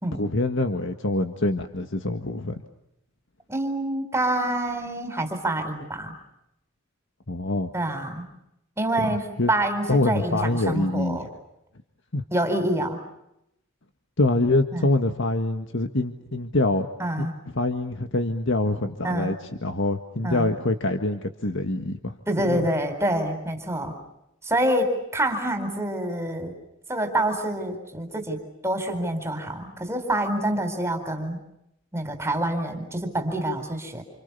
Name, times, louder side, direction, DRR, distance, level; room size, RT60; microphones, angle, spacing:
voice 1, 0.2-2.6 7.3-7.7 9.0-9.5 9.9-11.3 12.1-12.2 14.2-16.9 17.2-17.3 17.5-19.4 19.6-22.2 22.5-22.7, left 2 dB, 60° left, 6 dB, 1.7 m, -25 dB
voice 2, 3.5-6.1 7.7-8.3 8.8-11.2 12.3-13.0 14.7-14.9 17.0-17.3 19.0-19.3 20.2-20.5 22.3-23.9 24.4-26.5 26.9-31.4 31.9-34.0, right 1 dB, 15° right, 6 dB, 4.2 m, -26 dB
29.0 x 28.5 x 7.0 m, 0.81 s
head